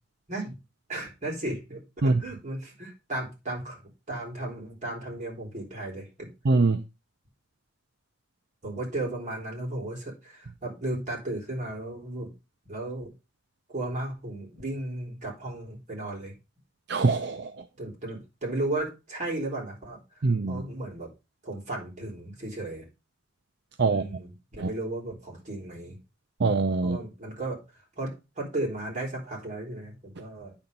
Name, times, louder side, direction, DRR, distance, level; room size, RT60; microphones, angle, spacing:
voice 1, 0.9-3.8 4.1-6.3 8.6-12.3 12.7-13.1 13.7-16.4 17.8-21.1 21.4-22.8 23.9-26.0 26.8-27.6 28.0-30.5, right 2 dB, 40° right, 4.0 m, -35 dB
voice 2, 6.4-6.8 16.9-17.6 20.2-20.6 23.8-24.0 24.6-24.7 26.4-27.0, right 3 dB, 60° right, 0.6 m, -23 dB
9.7 x 4.4 x 5.3 m
head